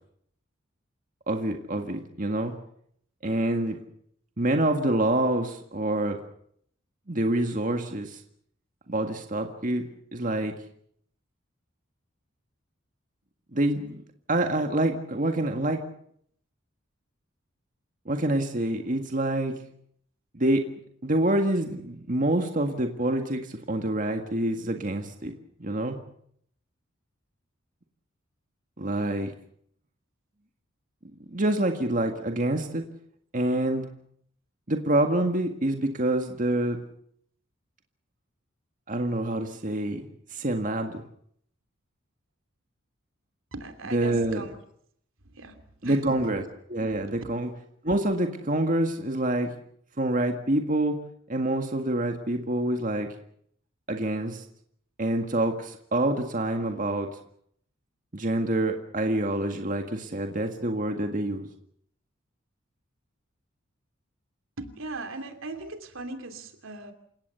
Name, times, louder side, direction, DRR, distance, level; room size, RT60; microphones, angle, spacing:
voice 1, 1.3-2.5 3.2-3.8 4.4-6.2 7.1-8.2 8.9-10.5 13.5-14.0 14.3-15.8 18.1-19.6 20.3-20.7 21.0-25.3 25.6-26.0 28.8-29.3 31.3-32.8 33.3-33.9 34.7-36.8 38.9-40.0 40.3-41.0 43.9-44.4 45.8-46.4 46.7-47.5 47.8-49.6 50.0-51.0 51.3-53.1 53.9-54.4 55.0-57.1 58.1-61.5, right 1 dB, 40° right, 5 dB, 1.9 m, -26 dB
voice 2, 43.5-44.6 45.2-46.3 47.1-47.2 64.6-66.9, right 2 dB, 80° right, 7 dB, 2.9 m, -39 dB
28.5 x 17.5 x 7.0 m, 0.68 s
head